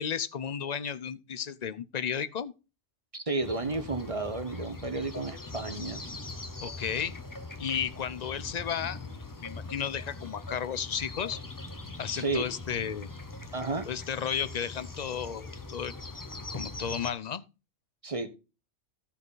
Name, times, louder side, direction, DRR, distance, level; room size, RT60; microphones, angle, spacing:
voice 1, 0.0-2.5 6.6-7.1 7.6-9.0 9.4-11.4 12.0-13.1 13.9-15.9 16.5-17.4, left 7 dB, 45° left, 0.7 m, -33 dB
voice 2, 3.1-6.0 12.1-12.5 13.5-13.9 18.0-18.3, right 3 dB, 30° right, 1.0 m, -32 dB
sound 1, 3.4-17.1, left 3 dB, 20° left, 0.9 m, -42 dB
15.5 x 5.7 x 4.0 m
omnidirectional pair, 1.2 m